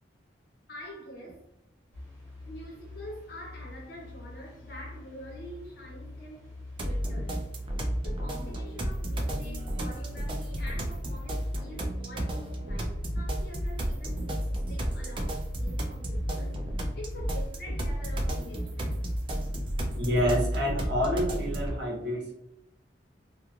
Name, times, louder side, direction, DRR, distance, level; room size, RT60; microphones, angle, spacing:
voice 1, 0.7-1.5 2.5-6.5 6.8-7.4 8.0-19.1, equal, 55° left, -2 dB, 0.9 m, -46 dB
sound 1, 1.9-20.4, left 2 dB, 10° left, 1.1 m, -46 dB
sound 2, 6.8-21.8, equal, 25° right, 0.3 m, -32 dB
voice 2, 19.9-22.3, equal, 60° right, -3 dB, 0.8 m, -28 dB
3.0 x 2.2 x 2.4 m, 0.82 s
head